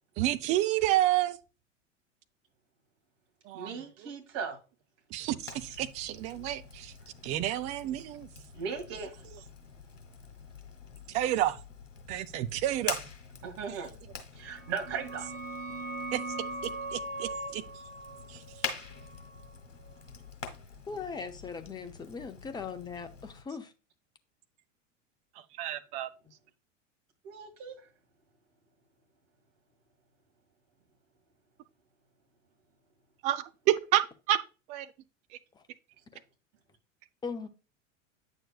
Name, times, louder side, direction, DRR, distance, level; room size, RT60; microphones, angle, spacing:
voice 1, 0.2-1.4 3.5-3.8 5.1-6.9 7.2-8.3 11.1-11.6 12.1-13.0 16.1-16.2 16.9-17.6 18.3-18.4 25.6-26.1 33.2-34.4 34.7-34.9, right 13 dB, 20° right, 0.3 m, -29 dB
voice 2, 3.5-4.6 8.5-9.1 13.4-13.9 14.4-15.3 27.2-27.8, right 6 dB, 40° right, 2.0 m, -37 dB
Fire, 5.4-23.4, left 5 dB, 75° left, 1.5 m, -45 dB
sound 1, 14.5-19.9, right 2 dB, 85° right, 1.4 m, -40 dB
voice 3, 20.9-23.7 35.5-35.6 37.2-37.5, left 5 dB, 10° left, 0.7 m, -39 dB
8.9 x 6.5 x 2.3 m
figure-of-eight pair, 85°, 38 cm